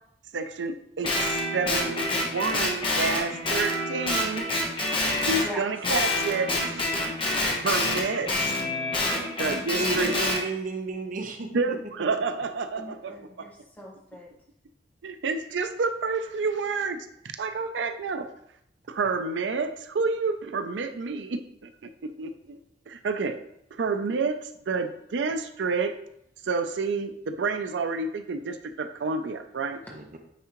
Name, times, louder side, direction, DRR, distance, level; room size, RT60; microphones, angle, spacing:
voice 1, 0.3-4.4 5.3-6.9 7.2-8.5 9.4-10.1 11.5-13.5 15.0-17.0 17.4-18.3 18.9-21.7 22.2-22.6 22.9-23.4 23.7-25.9 26.4-29.8, right 4 dB, 90° right, 8 dB, 0.5 m, -29 dB
Guitar, 1.0-5.5 5.8-10.4, left 1 dB, 30° left, 1.1 m, -27 dB
voice 2, 8.9-9.3 12.8-14.3, equal, 10° left, -3 dB, 1.2 m, -42 dB
voice 3, 9.8-11.8 29.9-30.2, right 3 dB, 45° right, 4 dB, 0.7 m, -32 dB
9.1 x 3.6 x 3.0 m, 0.77 s
head